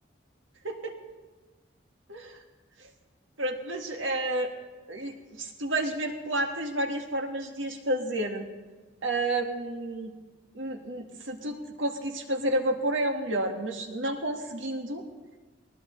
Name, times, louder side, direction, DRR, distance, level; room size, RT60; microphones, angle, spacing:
voice 1, 0.6-1.0 2.1-2.4 2.8-2.9 3.4-4.5 4.9-8.5 9.0-10.1 10.5-15.0, right 1 dB, 90° right, 3 dB, 1.8 m, -30 dB
21.0 x 19.0 x 3.2 m, 1.3 s
head